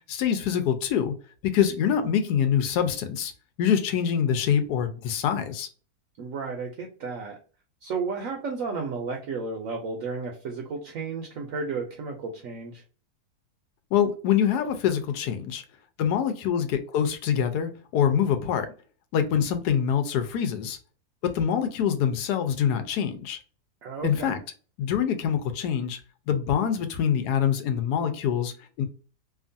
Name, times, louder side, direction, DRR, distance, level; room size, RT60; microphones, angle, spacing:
voice 1, 0.1-1.1 1.4-3.3 3.6-5.7 13.9-15.6 16.0-18.7 19.1-20.8 21.2-23.4 24.0-24.4 24.8-26.0 26.3-28.9, left 8 dB, 80° left, 1.1 m, -25 dB
voice 2, 6.2-7.4 7.8-12.8 23.8-24.4, right 4 dB, 65° right, 0.9 m, -33 dB
2.8 x 2.4 x 2.5 m
omnidirectional pair, 1.7 m